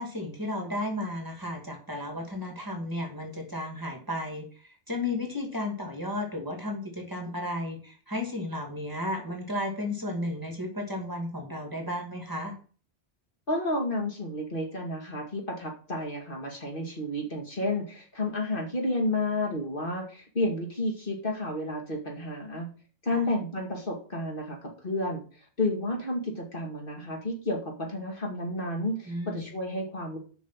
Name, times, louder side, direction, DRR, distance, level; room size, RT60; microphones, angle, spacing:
voice 1, 0.0-12.5 23.1-23.2 29.1-29.5, left 1 dB, 20° right, 2 dB, 2.4 m, -33 dB
voice 2, 13.5-22.7 23.0-25.2 25.6-30.2, left 1 dB, 50° left, 1 dB, 2.5 m, -31 dB
7.2 x 6.0 x 7.5 m, 0.39 s
omnidirectional pair, 1.1 m